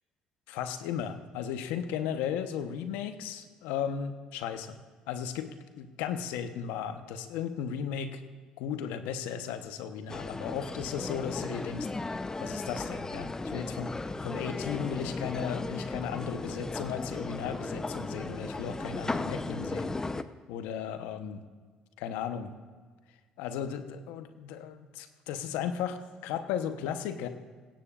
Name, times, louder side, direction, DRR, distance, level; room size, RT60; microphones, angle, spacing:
voice 1, 0.5-4.8 5.1-8.2 8.6-11.9 12.4-13.9 14.2-19.9 20.5-21.4 22.0-22.5 23.4-26.0 26.2-27.3, left 8 dB, 80° left, 9 dB, 1.0 m, -35 dB
sound 1, 10.1-20.2, left 3 dB, 20° left, 0.7 m, -36 dB
17.5 x 16.5 x 2.5 m, 1.5 s
hypercardioid pair, 60°, 3 cm